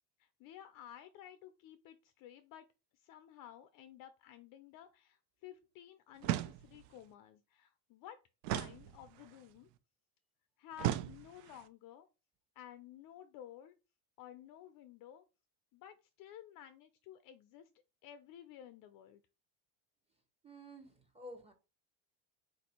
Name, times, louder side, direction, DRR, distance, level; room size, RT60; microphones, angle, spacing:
voice 1, 0.2-2.7 2.9-8.2 8.5-9.7 10.6-12.1 12.6-13.7 14.2-15.3 15.7-17.7 18.0-19.2, left 11 dB, 50° left, 0.5 m, -54 dB
sound 1, 6.2-7.0 8.4-9.4 10.8-11.6, right 13 dB, 70° right, 0.5 m, -37 dB
voice 2, 20.4-21.5, equal, 15° right, 0.9 m, -51 dB
4.2 x 2.6 x 4.2 m
cardioid pair, 130°, 45 cm